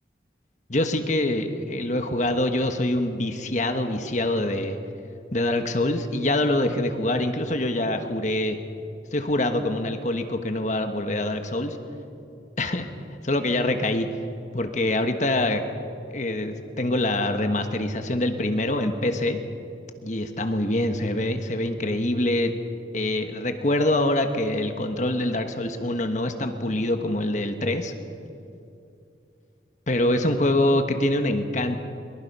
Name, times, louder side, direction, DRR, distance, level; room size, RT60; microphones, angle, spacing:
voice 1, 0.7-4.8 5.3-8.6 9.1-11.8 12.6-12.9 13.2-14.1 14.5-15.6 16.1-19.4 20.0-22.5 22.9-27.9 29.9-31.8, left 1 dB, 40° left, 7 dB, 1.4 m, -25 dB
23.5 x 22.0 x 5.5 m, 2.7 s
head